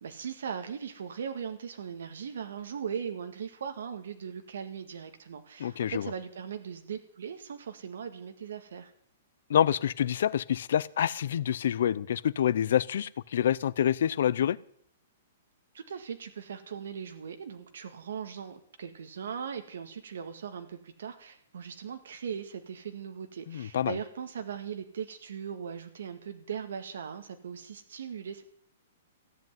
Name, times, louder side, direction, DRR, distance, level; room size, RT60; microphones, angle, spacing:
voice 1, 0.0-8.9 15.7-28.4, right 7 dB, 80° right, 1.8 m, -39 dB
voice 2, 5.6-6.1 9.5-14.6 23.5-24.0, left 9 dB, 60° left, 0.6 m, -27 dB
15.5 x 8.3 x 9.3 m
hypercardioid pair, 175°, 0 cm